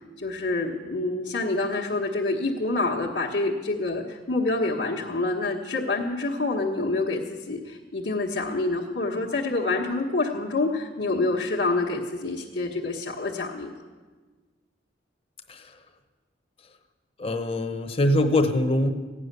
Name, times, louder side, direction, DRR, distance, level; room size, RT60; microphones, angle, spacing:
voice 1, 0.2-13.7, left 2 dB, 70° left, -5 dB, 1.4 m, -27 dB
voice 2, 17.2-18.9, left 1 dB, 35° left, 8 dB, 1.0 m, -23 dB
15.0 x 9.8 x 6.8 m, 1.4 s
head